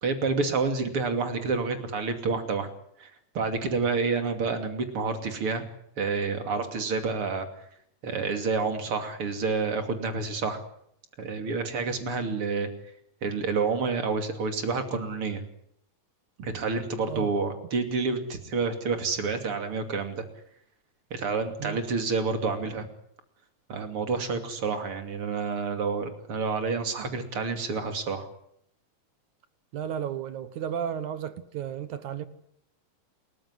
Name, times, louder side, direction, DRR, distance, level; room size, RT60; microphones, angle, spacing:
voice 1, 0.0-2.7 3.0-3.1 3.3-5.7 6.0-7.5 8.0-10.6 11.2-12.7 13.2-15.4 16.4-20.2 21.1-22.9 23.7-28.3, right 4 dB, 45° right, 3.3 m, -29 dB
voice 2, 29.7-32.3, right 9 dB, 65° right, 2.5 m, -33 dB
28.0 x 14.5 x 9.9 m
omnidirectional pair, 3.8 m